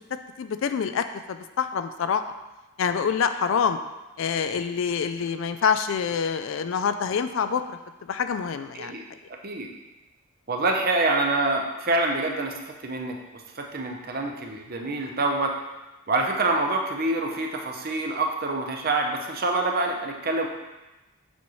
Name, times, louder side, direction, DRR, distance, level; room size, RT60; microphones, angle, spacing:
voice 1, 0.4-2.2 2.8-3.8 4.2-7.8 8.1-9.0, left 6 dB, 60° left, 10 dB, 0.3 m, -26 dB
voice 2, 10.5-12.5 12.8-13.2 13.6-15.5 16.1-20.5, right 2 dB, 40° right, 2 dB, 0.7 m, -26 dB
7.3 x 5.5 x 3.1 m, 1.1 s
head